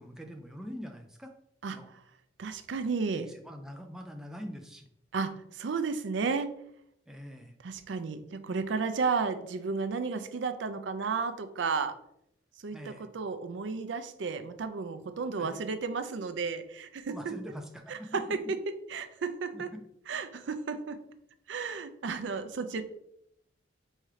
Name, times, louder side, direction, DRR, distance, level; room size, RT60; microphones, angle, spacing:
voice 1, 0.0-1.3 1.7-1.9 3.1-4.9 7.1-7.6 12.7-13.1 15.4-15.6 17.1-18.2 19.5-19.8, equal, 5° right, 3 dB, 0.3 m, -44 dB
voice 2, 2.4-3.3 5.1-6.5 7.6-11.9 12.6-17.3 17.9-18.4 18.9-19.7 20.1-21.0 21.5-22.8, right 4 dB, 75° right, 10 dB, 0.5 m, -33 dB
4.3 x 3.6 x 3.2 m, 0.75 s
head